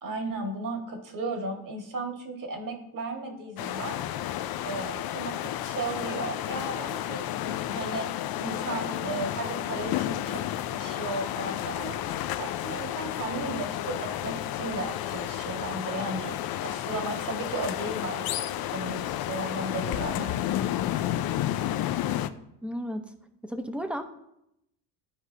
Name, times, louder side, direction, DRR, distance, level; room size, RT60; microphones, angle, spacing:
voice 1, 0.0-4.0 4.6-8.1 8.4-10.4 10.7-12.0 12.4-16.4 16.6-20.4, right 2 dB, 45° right, 3 dB, 1.9 m, -35 dB
sound 1, 3.6-22.3, left 12 dB, 50° left, 0.5 m, -31 dB
voice 2, 22.6-23.1 23.4-24.0, equal, ahead, 7 dB, 0.9 m, -33 dB
13.0 x 4.7 x 2.8 m, 0.81 s
supercardioid pair, 80°, 47 cm